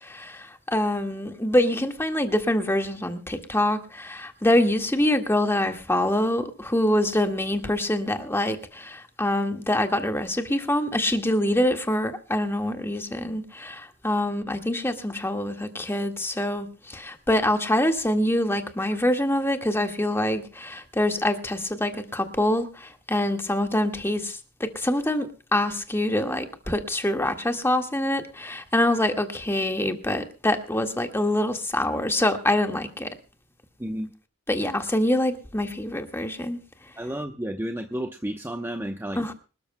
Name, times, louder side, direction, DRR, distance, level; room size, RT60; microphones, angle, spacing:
voice 1, 0.0-33.1 34.5-36.6 39.1-39.3, left 1 dB, 10° left, 1.7 m, -25 dB
voice 2, 33.8-34.1 37.0-39.2, right 1 dB, 10° right, 0.9 m, -31 dB
26.0 x 13.0 x 2.2 m
head